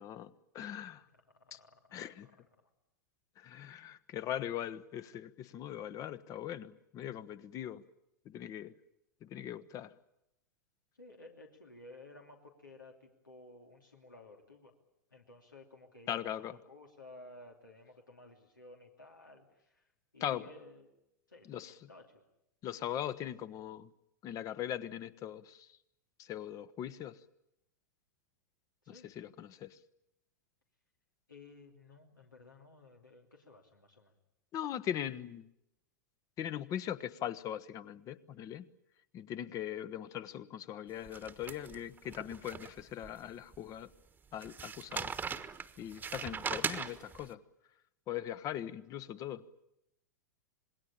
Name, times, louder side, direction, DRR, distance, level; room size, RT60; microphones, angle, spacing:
voice 1, 0.0-1.0 1.5-1.6 1.9-2.3 3.4-7.8 8.2-8.7 9.2-9.9 16.1-16.6 20.2-20.4 21.5-21.7 22.6-23.9 24.2-25.7 26.2-27.2 28.9-29.8 34.5-35.5 36.4-38.7 39.1-43.9 44.3-45.1 45.8-47.4 48.1-49.5, left 11 dB, 35° left, 14 dB, 1.1 m, -40 dB
voice 2, 1.1-2.7 11.0-14.8 15.1-20.9 21.3-22.2 28.8-29.2 31.3-34.2, left 2 dB, 90° left, 1 dB, 2.9 m, -55 dB
sound 1, 41.1-43.1 43.5-43.6 44.4-47.2, right 6 dB, 15° right, 1.3 m, -40 dB
27.0 x 20.5 x 8.9 m, 0.86 s
figure-of-eight pair, 100°, 10 cm